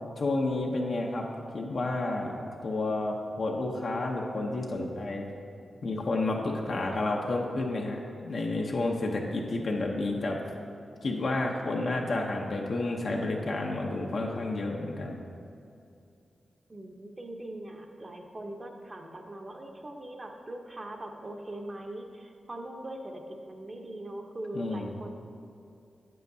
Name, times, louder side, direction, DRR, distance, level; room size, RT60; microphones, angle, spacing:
voice 1, 0.0-1.3 1.5-5.3 5.8-10.4 11.0-15.2 24.5-24.9, left 2 dB, 65° left, -1 dB, 0.7 m, -30 dB
voice 2, 16.7-25.2, right 1 dB, 35° right, 3 dB, 0.8 m, -41 dB
8.2 x 7.6 x 2.7 m, 2.6 s
cardioid pair, 65°, 0 cm